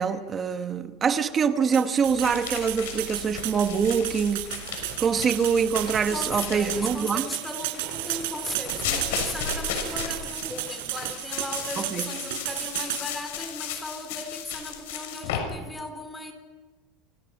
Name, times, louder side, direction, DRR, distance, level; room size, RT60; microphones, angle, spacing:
voice 1, 0.0-4.4 5.0-7.2 11.8-12.1, right 6 dB, 20° right, 1.1 m, -24 dB
sound 1, 1.7-13.0, right 14 dB, 85° right, 6.1 m, -33 dB
sound 2, 2.0-6.8 8.7-15.4, left 8 dB, 90° left, 6.8 m, -35 dB
sound 3, 4.4-11.7, right 10 dB, 50° right, 3.5 m, -44 dB
voice 2, 6.1-16.3, left 2 dB, 10° left, 3.7 m, -37 dB
29.0 x 26.0 x 5.9 m
cardioid pair, 160°, 0 cm